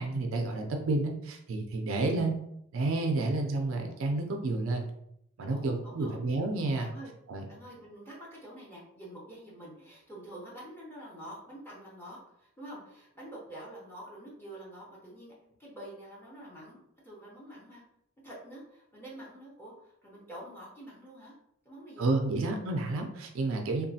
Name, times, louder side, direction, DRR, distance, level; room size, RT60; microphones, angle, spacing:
voice 1, 0.0-2.3 2.7-4.9 5.4-6.9 7.3-7.4 22.0-23.9, right 2 dB, 70° right, 3 dB, 0.4 m, -30 dB
voice 2, 5.5-6.2 6.8-7.1 7.5-15.3 15.6-16.8 17.0-17.8 18.2-21.3 21.6-22.5, right 1 dB, 10° left, -5 dB, 0.6 m, -47 dB
3.0 x 2.3 x 2.7 m, 0.75 s
head